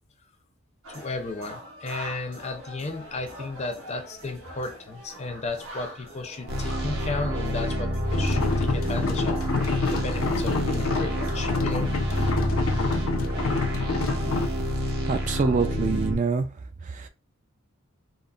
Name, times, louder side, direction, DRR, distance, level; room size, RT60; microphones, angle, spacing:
sound 1, 0.8-12.6, equal, 85° right, 0.9 m, -43 dB
voice 1, 0.9-9.4 9.9-11.9, left 3 dB, 30° left, 0.5 m, -34 dB
sound 2, 6.5-16.2, equal, 55° right, 0.8 m, -28 dB
sound 3, 8.1-14.5, left 3 dB, 85° left, 0.5 m, -28 dB
voice 2, 15.1-16.5 16.8-17.1, right 4 dB, 35° right, 0.3 m, -25 dB
3.8 x 2.0 x 2.4 m
head